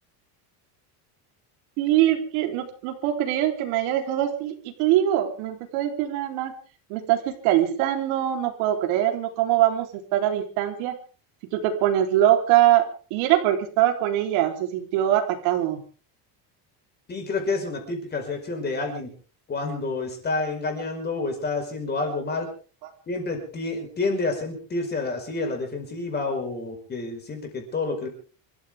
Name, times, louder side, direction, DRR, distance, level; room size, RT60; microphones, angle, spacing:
voice 1, 1.8-6.5 6.9-11.0 11.5-15.8 22.8-22.9, right 12 dB, 80° right, 4 dB, 3.8 m, -23 dB
voice 2, 17.1-19.1 19.5-22.5 23.1-28.1, left 3 dB, 20° left, 4 dB, 5.1 m, -29 dB
28.0 x 14.0 x 3.6 m, 0.39 s
cardioid pair, 175°, 46 cm